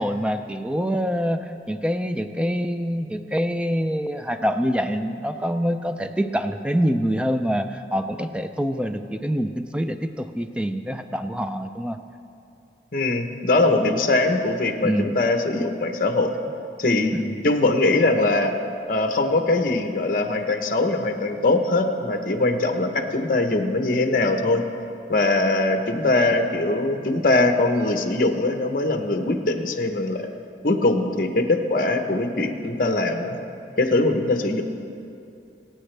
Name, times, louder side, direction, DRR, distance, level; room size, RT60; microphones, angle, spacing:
voice 1, 0.0-12.0 14.8-15.1 17.1-17.3, equal, 5° right, 8 dB, 0.4 m, -25 dB
voice 2, 12.9-16.3 16.8-17.1 17.4-18.5 18.9-24.6 25.1-30.2 30.6-33.4 33.8-34.6, left 2 dB, 45° left, 5 dB, 0.9 m, -21 dB
22.5 x 8.9 x 3.3 m, 2.6 s
head